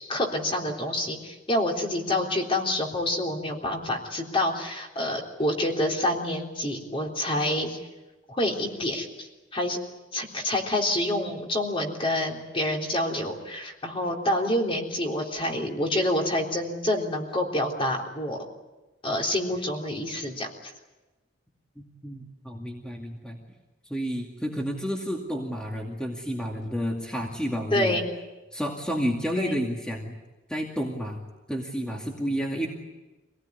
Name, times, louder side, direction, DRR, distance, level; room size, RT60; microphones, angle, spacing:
voice 1, 0.0-7.8 8.3-9.8 10.1-18.4 19.0-20.7 27.7-28.0 29.4-29.6, left 1 dB, 30° left, 1 dB, 3.6 m, -27 dB
voice 2, 21.8-23.4 23.9-28.0 28.5-30.2 30.5-31.2 31.5-32.7, equal, 5° left, 0 dB, 2.3 m, -30 dB
25.5 x 18.0 x 9.7 m, 1.1 s
head